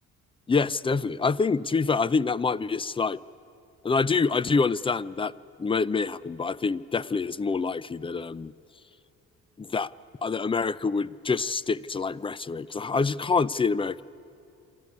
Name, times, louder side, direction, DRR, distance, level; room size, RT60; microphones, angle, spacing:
voice 1, 0.5-3.2 3.8-5.3 5.6-8.5 9.6-9.9 10.2-14.0, left 4 dB, 20° left, 20 dB, 0.4 m, -26 dB
26.5 x 13.0 x 9.6 m, 2.6 s
cardioid pair, 90°, 30 cm